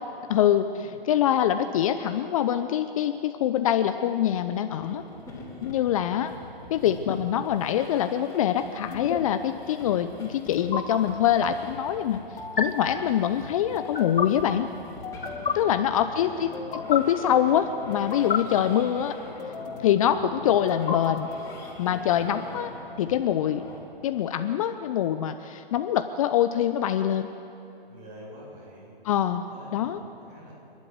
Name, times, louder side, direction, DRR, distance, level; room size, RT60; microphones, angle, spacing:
voice 1, 0.3-5.0 5.6-6.3 6.7-12.2 12.6-14.7 15.5-19.2 19.8-21.3 21.8-23.6 24.0-27.3 29.0-29.4 29.7-30.0, left 10 dB, 35° left, 9 dB, 0.7 m, -24 dB
sound 1, 4.8-23.8, left 2 dB, 10° left, 4.3 m, -44 dB
sound 2, 6.9-7.1 8.9-9.2 10.5-10.8 12.4-12.6 13.7-14.3 15.0-15.5 16.5-17.0 17.9-18.4 19.4-20.0 20.7-21.5, left 6 dB, 65° left, 2.8 m, -31 dB
voice 2, 15.5-16.5 27.9-28.9 29.5-30.5, equal, 25° right, -3 dB, 7.2 m, -47 dB
27.5 x 11.5 x 9.5 m, 2.9 s
hypercardioid pair, 135°, 30 cm